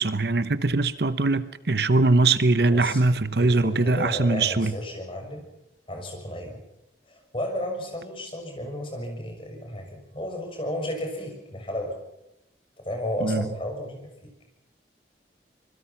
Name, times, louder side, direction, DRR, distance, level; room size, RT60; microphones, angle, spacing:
voice 1, 0.0-4.7 13.2-13.4, right 3 dB, 65° right, 1.0 m, -22 dB
voice 2, 3.4-5.4 5.9-6.6 7.1-11.9 12.8-14.3, left 1 dB, 30° left, 6.4 m, -33 dB
26.5 x 21.5 x 5.9 m
head